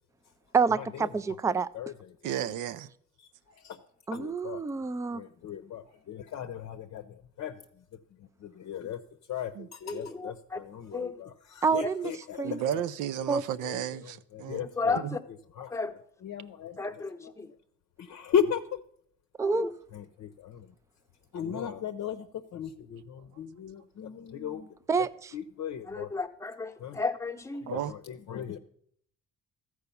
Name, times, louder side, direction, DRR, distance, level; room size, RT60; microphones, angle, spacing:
voice 1, 0.5-1.7 4.1-5.2 11.6-12.1 12.4-12.6 13.3-13.4 19.4-19.7 24.9-25.3, right 5 dB, 10° right, 0.3 m, -27 dB
voice 2, 1.5-1.9 3.6-3.8 4.1-4.6 5.1-7.0 7.4-7.6 8.4-9.0 9.3-12.8 13.6-13.8 14.3-15.0 15.6-15.7 16.2-16.8 18.0-18.8 19.9-20.7 21.3-22.3 22.5-24.7 25.3-26.1 26.8-27.0 27.7-28.6, left 8 dB, 60° left, 0.7 m, -35 dB
voice 3, 2.2-2.9 9.6-9.7 12.4-14.7 15.0-15.2 27.7-27.9, right 11 dB, 85° right, 0.6 m, -33 dB
voice 4, 9.8-10.6 10.9-11.2 11.8-11.9 14.6-15.2 15.7-15.9 16.8-17.5 19.4-19.7 25.8-27.7, left 3 dB, 10° left, 0.8 m, -33 dB
13.5 x 4.8 x 6.9 m
cardioid pair, 90°, 30 cm